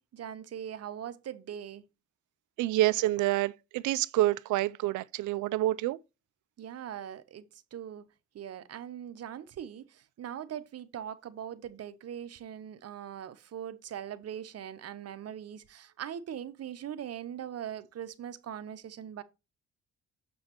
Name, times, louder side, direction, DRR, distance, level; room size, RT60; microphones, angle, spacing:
voice 1, 0.0-1.9 6.6-7.4 7.7-8.1 8.3-19.2, right 9 dB, 55° right, 0.9 m, -41 dB
voice 2, 2.6-6.0, right 15 dB, 80° right, 0.5 m, -27 dB
7.0 x 6.4 x 2.9 m
cardioid pair, 90°, 30 cm